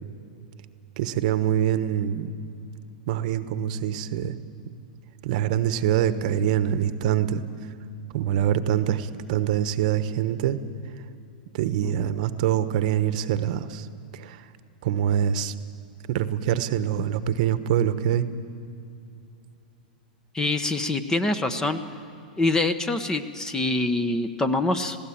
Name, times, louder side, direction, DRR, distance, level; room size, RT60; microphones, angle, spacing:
voice 1, 1.0-2.3 3.1-4.4 5.2-7.4 8.1-10.6 11.5-13.9 14.1-14.4 14.8-15.5 16.1-18.3, right 10 dB, 60° right, 12 dB, 1.1 m, -24 dB
voice 2, 20.3-21.8 22.4-25.0, left 2 dB, 15° left, 11 dB, 1.0 m, -25 dB
20.5 x 16.0 x 8.7 m, 2.8 s
hypercardioid pair, 125°, 5 cm